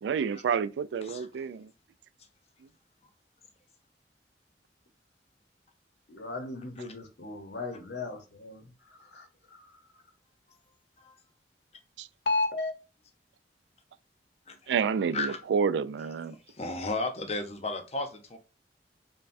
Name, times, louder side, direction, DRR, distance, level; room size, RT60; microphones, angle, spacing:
voice 1, 0.0-1.7 12.0-12.1 14.7-16.4, right 6 dB, 85° right, 0.3 m, -29 dB
voice 2, 6.1-9.8 12.3-12.7, left 3 dB, 75° left, 0.8 m, -34 dB
voice 3, 16.5-18.4, left 2 dB, 35° left, 0.7 m, -34 dB
5.4 x 2.2 x 2.6 m
head